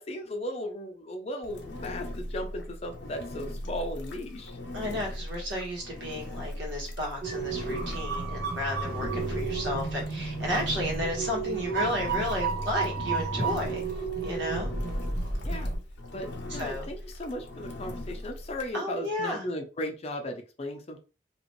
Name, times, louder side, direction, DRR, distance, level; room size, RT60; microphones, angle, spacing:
voice 1, 0.0-4.5 9.1-9.4 15.4-15.7 16.1-21.0, left 1 dB, 35° left, 4 dB, 0.5 m, -36 dB
Engine, 1.4-18.7, left 1 dB, 75° left, 0.7 m, -40 dB
voice 2, 4.7-13.8 14.2-14.7 16.5-16.9 18.7-19.5, left 1 dB, 80° right, -1 dB, 1.4 m, -33 dB
sound 1, 7.2-15.8, right 4 dB, 60° right, 1.2 m, -32 dB
2.9 x 2.6 x 3.0 m, 0.34 s
head